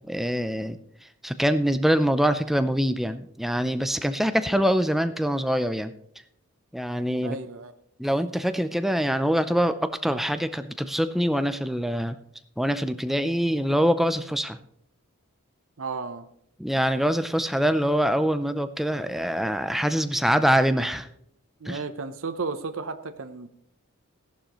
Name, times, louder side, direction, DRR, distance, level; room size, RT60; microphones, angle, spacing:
voice 1, 0.1-5.9 6.7-7.4 8.0-12.2 12.6-14.6 16.6-21.1 21.6-21.8, equal, ahead, 10 dB, 0.4 m, -24 dB
voice 2, 7.2-7.7 15.8-16.3 21.6-23.5, right 4 dB, 65° right, 8 dB, 0.7 m, -33 dB
15.5 x 11.5 x 3.0 m, 0.71 s
head